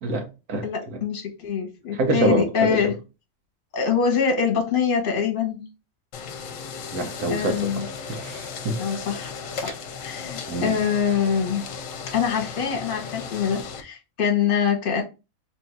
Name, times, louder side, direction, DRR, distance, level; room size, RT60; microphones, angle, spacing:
voice 1, 0.0-1.0 1.9-2.9 6.9-8.8 9.6-9.7 10.5-10.8, right 2 dB, 85° right, 1.4 m, -26 dB
voice 2, 0.6-2.9 3.7-5.6 7.3-7.8 8.8-11.7 12.1-15.0, left 7 dB, 40° left, 1.1 m, -24 dB
sound 1, 6.1-13.8, left 6 dB, 70° left, 1.0 m, -36 dB
3.3 x 2.6 x 4.5 m
omnidirectional pair, 1.5 m